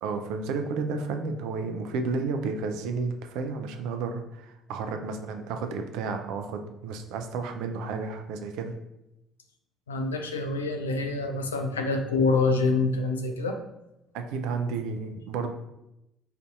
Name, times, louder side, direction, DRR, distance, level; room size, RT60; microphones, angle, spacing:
voice 1, 0.0-8.7 14.1-15.5, right 4 dB, 65° right, 6 dB, 0.3 m, -32 dB
voice 2, 9.9-13.6, left 3 dB, 80° left, 4 dB, 0.3 m, -26 dB
4.3 x 2.5 x 2.3 m, 0.89 s
figure-of-eight pair, 50°, 0 cm